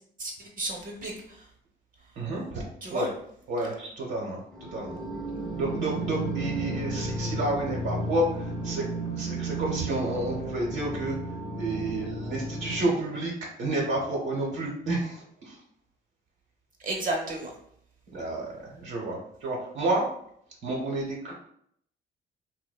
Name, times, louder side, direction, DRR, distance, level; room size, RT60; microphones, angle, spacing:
voice 1, 0.2-1.4 2.8-3.1 16.8-17.5, right 2 dB, 45° right, 1 dB, 0.6 m, -32 dB
voice 2, 2.2-2.6 2.9-3.1 3.5-4.4 4.7-5.0 5.5-11.2 11.6-13.3 13.6-15.6 18.1-20.1 20.6-21.3, right 1 dB, 75° right, -1 dB, 0.8 m, -30 dB
sound 1, 4.5-12.8, right 2 dB, 5° left, 0.5 m, -33 dB
2.7 x 2.1 x 2.3 m, 0.68 s
cardioid pair, 90°, 20 cm